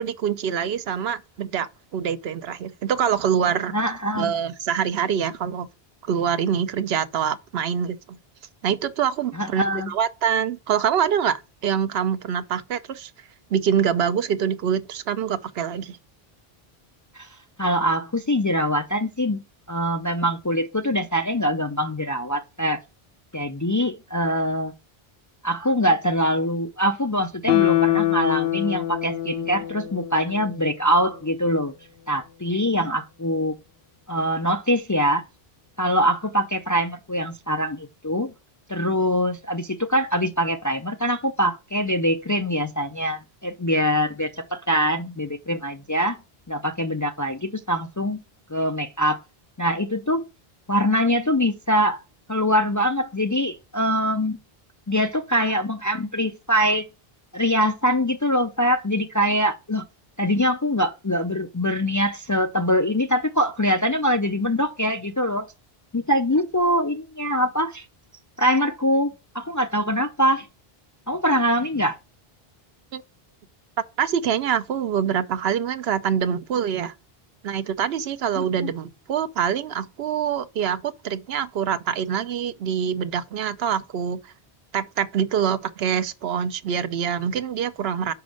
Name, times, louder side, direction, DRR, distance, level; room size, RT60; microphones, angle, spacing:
voice 1, 0.0-3.7 4.1-5.7 6.0-8.2 8.6-13.1 13.5-16.0 72.9-73.0 74.0-76.9 77.4-84.2 84.7-88.1, right 8 dB, 85° right, 0.9 m, -25 dB
voice 2, 3.7-4.3 9.3-9.9 17.1-17.3 17.6-19.4 19.7-22.8 23.3-24.7 25.4-31.7 32.1-33.6 34.1-35.2 35.8-38.3 38.7-46.2 46.5-48.2 48.5-49.2 49.6-50.2 50.7-52.0 52.3-54.4 54.9-56.9 57.3-59.9 60.2-65.5 65.9-67.8 68.4-70.5 71.1-72.0 78.4-78.7, equal, 30° left, 0.3 m, -23 dB
Guitar, 27.5-30.7 31.1-31.2, left 15 dB, 80° left, 0.9 m, -24 dB
5.2 x 4.7 x 6.3 m
omnidirectional pair, 1.0 m